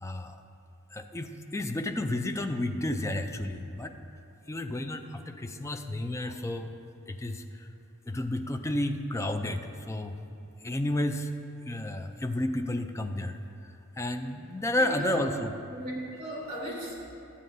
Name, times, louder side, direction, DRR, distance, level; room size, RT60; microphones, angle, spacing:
voice 1, 0.0-0.4 0.9-3.9 4.5-6.8 7.1-7.7 8.1-10.2 10.6-11.3 11.7-13.4 14.0-15.5, left 1 dB, 15° left, 6 dB, 0.3 m, -31 dB
voice 2, 14.8-15.2 15.7-16.9, right 1 dB, 30° right, -5 dB, 2.0 m, -36 dB
12.5 x 8.4 x 2.6 m, 2.7 s
head